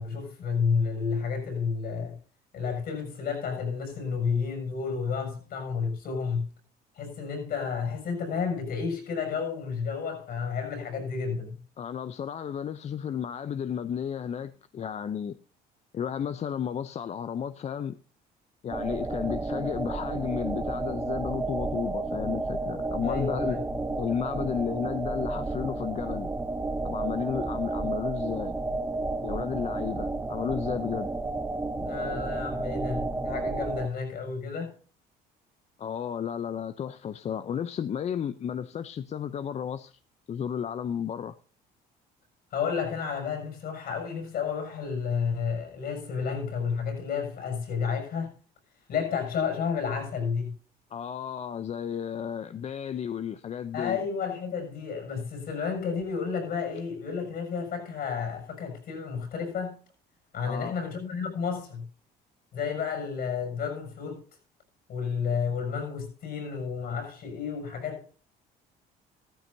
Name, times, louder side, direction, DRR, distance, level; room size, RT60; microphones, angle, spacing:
voice 1, 0.0-2.2 2.5-6.5 6.9-11.6 23.0-23.6 31.8-34.7 42.5-48.3 48.9-50.5 53.7-59.7 60.3-61.9 62.5-64.2 64.9-68.1, left 6 dB, 65° left, 6.7 m, -31 dB
voice 2, 11.8-15.4 15.9-18.0 18.6-23.6 24.0-26.3 26.8-28.6 29.2-31.1 35.8-39.9 40.3-41.4 50.9-54.0 60.5-60.8, left 8 dB, 40° left, 0.6 m, -33 dB
sound 1, 18.7-33.9, right 2 dB, 15° right, 0.8 m, -31 dB
15.0 x 13.5 x 2.7 m
cardioid pair, 110°, 17 cm